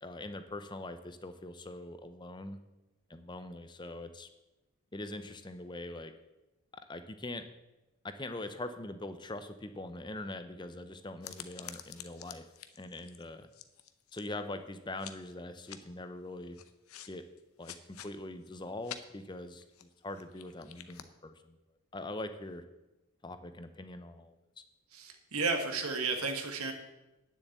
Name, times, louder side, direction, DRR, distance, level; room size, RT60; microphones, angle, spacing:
voice 1, 0.0-2.6 3.1-4.3 4.9-6.1 6.9-7.5 8.0-12.5 12.8-13.5 14.1-16.6 17.1-17.2 17.6-21.6 21.9-22.6 23.2-24.4, left 2 dB, 20° left, 9 dB, 0.6 m, -42 dB
sound 1, 11.2-14.5 15.0-15.3 15.6-15.8 16.5-17.1 17.4-18.1 18.4-18.5 18.8-19.0 19.6-21.0, left 10 dB, 85° left, 0.8 m, -48 dB
voice 2, 24.9-26.7, right 4 dB, 90° right, 5 dB, 1.8 m, -33 dB
9.8 x 7.1 x 8.1 m, 1.0 s
head